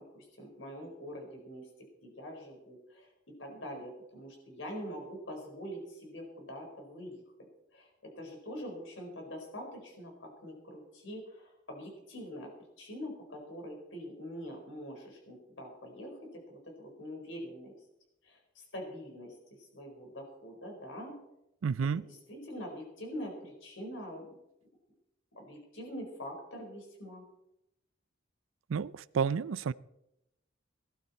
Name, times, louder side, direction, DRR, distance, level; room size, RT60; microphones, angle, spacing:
voice 1, 0.0-1.6 2.0-3.1 3.4-7.2 7.7-7.9 8.1-12.5 12.8-16.1 16.5-17.7 18.2-21.1 21.9-24.3 25.3-27.2, equal, 65° left, 2 dB, 4.6 m, -44 dB
voice 2, 21.6-22.1 28.7-29.7, right 6 dB, 80° right, 19 dB, 0.4 m, -31 dB
18.0 x 12.0 x 4.3 m, 0.86 s
head